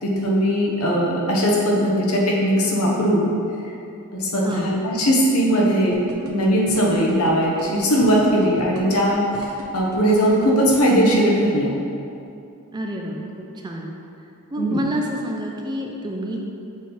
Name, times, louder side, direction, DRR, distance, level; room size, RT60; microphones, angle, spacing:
voice 1, 0.0-3.3 4.1-6.0 6.2-11.8 14.6-14.8, equal, 80° left, -2 dB, 1.1 m, -19 dB
sound 1, 5.9-11.1, right 1 dB, 85° right, 0.8 m, -38 dB
voice 2, 12.7-13.9 14.5-16.4, equal, 20° right, 0 dB, 0.5 m, -28 dB
6.1 x 3.9 x 4.3 m, 2.6 s
head